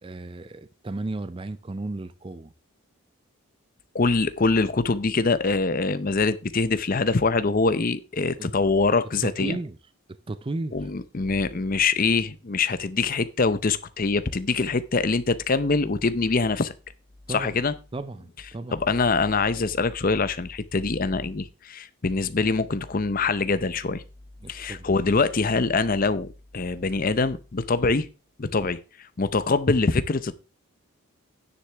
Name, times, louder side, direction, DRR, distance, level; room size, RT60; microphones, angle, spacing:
voice 1, 0.0-2.5 8.4-8.5 9.2-9.8 10.1-10.9 17.3-17.6 17.9-18.8 24.4-24.9, right 2 dB, 25° right, 0.4 m, -34 dB
voice 2, 3.9-9.6 10.7-16.7 17.3-17.7 18.7-24.0 24.5-26.3 26.5-28.1 28.4-28.8 29.2-30.3, left 3 dB, 40° left, 0.6 m, -24 dB
9.9 x 9.7 x 3.4 m
head